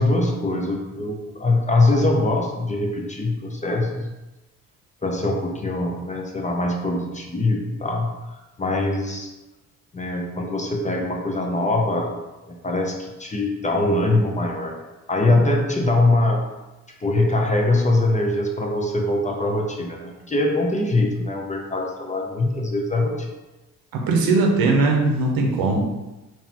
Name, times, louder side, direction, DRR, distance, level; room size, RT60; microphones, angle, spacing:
voice 1, 0.0-4.1 5.0-9.3 9.9-12.1 12.5-16.5 17.0-23.3, left 2 dB, 20° left, 0 dB, 0.6 m, -23 dB
voice 2, 23.9-25.8, right 3 dB, 80° right, 1 dB, 0.8 m, -19 dB
3.7 x 2.9 x 2.9 m, 1.1 s
cardioid pair, 90°, 35 cm